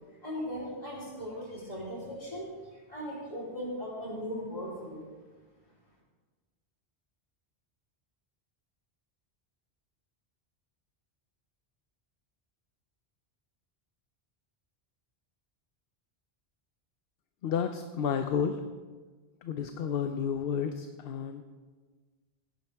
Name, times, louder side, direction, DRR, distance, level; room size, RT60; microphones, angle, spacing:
voice 1, 0.2-5.1, equal, 40° left, -5 dB, 3.6 m, -38 dB
voice 2, 17.4-18.6 19.4-21.4, left 7 dB, 70° left, 7 dB, 0.8 m, -31 dB
16.5 x 9.9 x 3.5 m, 1.4 s
omnidirectional pair, 1.0 m